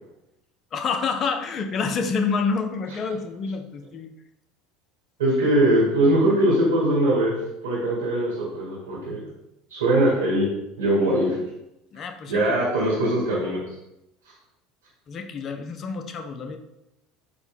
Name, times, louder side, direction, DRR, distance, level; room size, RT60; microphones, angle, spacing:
voice 1, 0.7-4.1 11.9-12.5 15.1-16.6, left 5 dB, 45° left, 7 dB, 0.5 m, -28 dB
voice 2, 5.2-7.3 7.6-9.2 9.7-10.5 10.8-11.4 12.3-13.6, right 1 dB, 85° right, -6 dB, 1.3 m, -21 dB
4.4 x 2.1 x 3.6 m, 0.88 s
hypercardioid pair, 80°, 0 cm